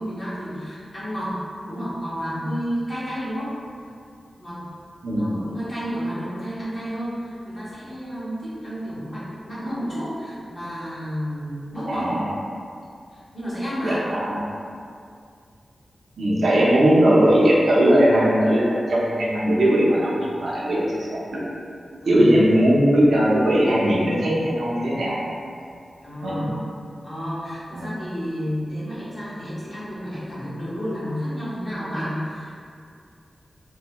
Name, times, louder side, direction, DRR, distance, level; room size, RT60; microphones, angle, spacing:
voice 1, 0.0-1.4 1.7-3.5 4.4-4.6 5.1-12.1 13.1-14.1 22.0-22.4 26.0-26.5 27.0-32.5, equal, 45° left, -11 dB, 1.3 m, -31 dB
voice 2, 5.0-5.4 11.9-12.3 13.8-14.4 16.2-21.4 22.1-25.2 26.2-26.5 27.7-27.9, equal, 85° right, -6 dB, 0.6 m, -19 dB
3.0 x 2.2 x 2.9 m, 2.4 s
wide cardioid pair, 75°, 0 cm